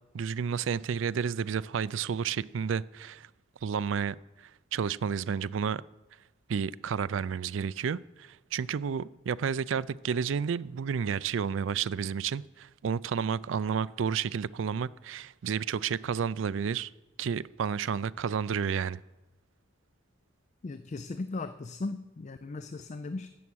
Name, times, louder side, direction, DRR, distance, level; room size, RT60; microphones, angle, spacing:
voice 1, 0.1-3.3 3.6-4.2 4.7-5.8 6.5-16.9 17.2-19.0, right 6 dB, 75° right, 0.4 m, -31 dB
voice 2, 20.6-23.3, left 3 dB, 35° left, 0.4 m, -37 dB
14.0 x 8.4 x 6.3 m
head